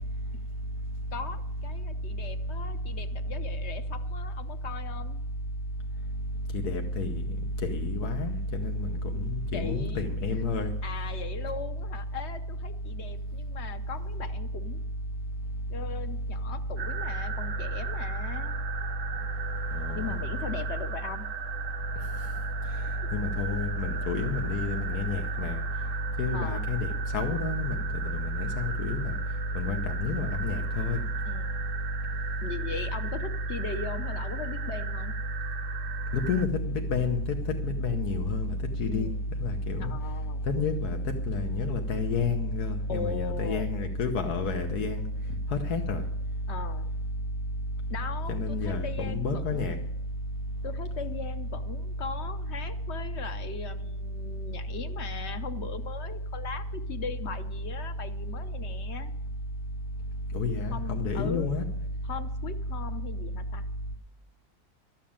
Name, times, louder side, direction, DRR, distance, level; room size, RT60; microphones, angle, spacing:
voice 1, 1.1-5.2 9.5-10.4 10.8-14.8 15.7-18.6 19.9-21.3 26.3-26.6 31.2-31.7 32.4-35.2 38.9-39.2 39.7-40.5 42.9-43.7 46.5-46.9 47.9-49.7 50.6-59.1 60.7-61.5 62.0-63.7, left 5 dB, 55° left, 0.9 m, -39 dB
voice 2, 6.6-7.1 7.6-8.9 9.1-10.7 19.8-20.1 23.1-25.6 26.2-27.8 28.1-29.1 29.5-31.0 36.1-37.2 37.6-38.5 38.8-39.1 39.4-39.9 40.5-41.0 41.3-45.1 45.5-46.0 48.3-49.7 60.3-61.6, left 3 dB, 85° left, 1.5 m, -29 dB
sound 1, 16.8-36.5, right 7 dB, 60° right, 1.1 m, -38 dB
12.5 x 7.5 x 8.7 m
omnidirectional pair, 1.6 m